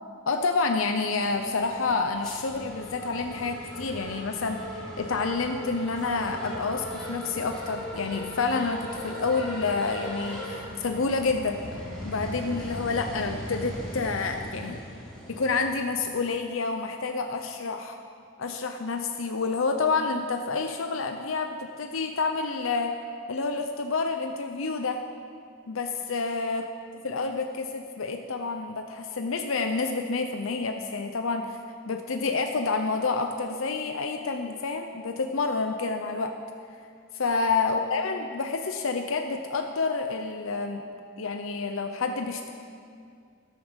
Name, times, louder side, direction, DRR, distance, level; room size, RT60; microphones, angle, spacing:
voice 1, 0.3-11.6 12.0-14.8 15.3-18.0 18.4-23.0 23.3-25.0 25.7-26.6 27.0-31.6 31.9-36.3 37.1-40.8 41.2-42.5, left 4 dB, 90° left, 5 dB, 0.7 m, -28 dB
sound 1, 1.2-15.8, equal, 5° left, 3.8 m, -39 dB
13.5 x 11.5 x 5.2 m, 2.3 s
head